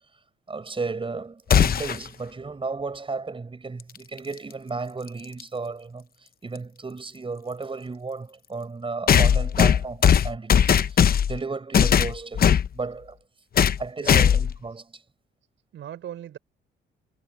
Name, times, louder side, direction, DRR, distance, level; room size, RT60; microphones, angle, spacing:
voice 1, 0.5-11.0 11.3-13.2 13.8-15.0, right 4 dB, 25° right, 6.0 m, -34 dB
sound 1, 1.5-2.1 4.2-4.3 5.4-5.5 9.1-11.4 11.7-12.7 13.6-13.8 14.1-14.6, left 8 dB, 50° left, 0.9 m, -18 dB
voice 2, 13.5-14.3 15.7-16.4, right 11 dB, 70° right, 5.9 m, -41 dB
cardioid pair, 90°, 20 cm